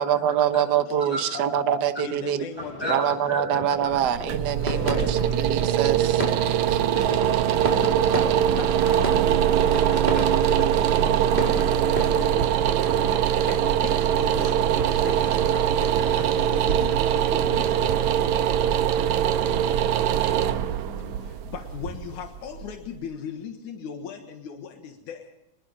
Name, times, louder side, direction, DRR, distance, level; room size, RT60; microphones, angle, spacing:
voice 1, 0.0-2.4 2.9-6.3 6.7-6.8, right 9 dB, 55° right, 9 dB, 1.2 m, -25 dB
voice 2, 0.5-1.6 2.0-3.0 4.7-5.4 6.9-7.3 7.7-9.2 9.7-12.6 13.1-18.0 21.2-25.3, left 7 dB, 85° left, 5 dB, 3.0 m, -39 dB
sound 1, 2.6-13.1, right 1 dB, 15° right, 4.8 m, -34 dB
voice 3, 3.3-3.6 4.2-4.3 6.6-7.2 12.9-13.5 18.5-21.3, left 1 dB, 5° left, -2 dB, 6.4 m, -37 dB
sound 2, 3.9-22.9, right 10 dB, 80° right, 2.3 m, -22 dB
27.0 x 20.0 x 5.5 m, 0.90 s
omnidirectional pair, 3.4 m